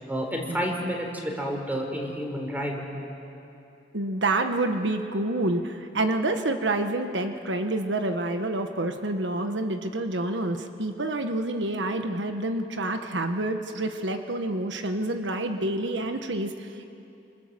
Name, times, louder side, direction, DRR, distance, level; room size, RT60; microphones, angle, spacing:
voice 1, 0.1-2.9, equal, 10° right, 1 dB, 4.2 m, -30 dB
voice 2, 3.9-16.8, right 2 dB, 80° right, 6 dB, 1.3 m, -28 dB
28.5 x 26.5 x 7.6 m, 2.8 s
head